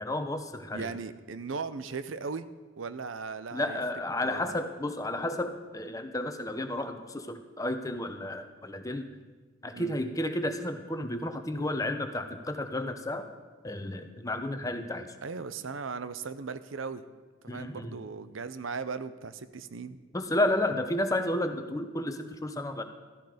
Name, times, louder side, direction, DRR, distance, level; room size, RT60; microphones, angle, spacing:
voice 1, 0.0-0.9 3.5-9.1 9.6-13.3 13.6-15.1 17.5-18.0 20.1-22.8, left 1 dB, 15° left, 7 dB, 0.9 m, -32 dB
voice 2, 0.7-2.5 2.8-3.8 4.2-4.6 9.7-10.0 15.2-17.0 17.4-20.0, right 4 dB, 90° right, 13 dB, 0.7 m, -37 dB
14.5 x 13.5 x 5.1 m, 1.3 s
head